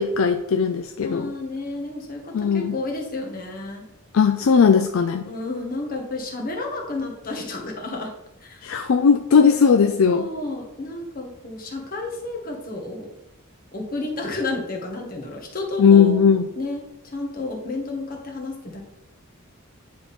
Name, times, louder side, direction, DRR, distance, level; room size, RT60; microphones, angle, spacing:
voice 1, 0.0-1.3 2.3-2.8 4.1-5.2 8.6-10.3 15.8-16.5, left 6 dB, 65° left, 7 dB, 0.4 m, -17 dB
voice 2, 1.0-3.8 5.3-8.1 8.4-8.7 10.1-13.1 13.7-16.2 16.6-18.8, left 2 dB, 40° left, 0 dB, 1.4 m, -31 dB
9.4 x 3.7 x 4.2 m, 0.88 s
head